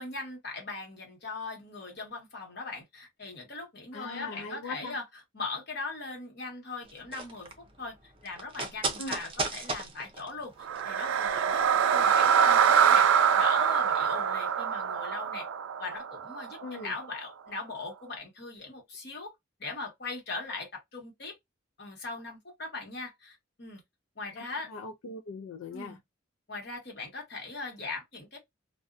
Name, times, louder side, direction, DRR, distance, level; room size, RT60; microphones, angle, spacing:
voice 1, 0.0-5.0 5.3-11.6 11.9-15.5 15.8-19.3 19.6-21.4 21.8-23.8 24.2-24.7 25.7-26.0 26.5-28.4, left 3 dB, 50° left, 1.2 m, -40 dB
voice 2, 3.9-5.0 9.0-9.2 16.6-16.9 24.4-26.0, left 3 dB, 80° left, 0.4 m, -40 dB
sound 1, 6.8-11.5 11.7-11.8, right 3 dB, 25° right, 0.5 m, -36 dB
sound 2, 10.6-16.8, right 7 dB, 75° right, 0.3 m, -24 dB
2.6 x 2.1 x 2.4 m
head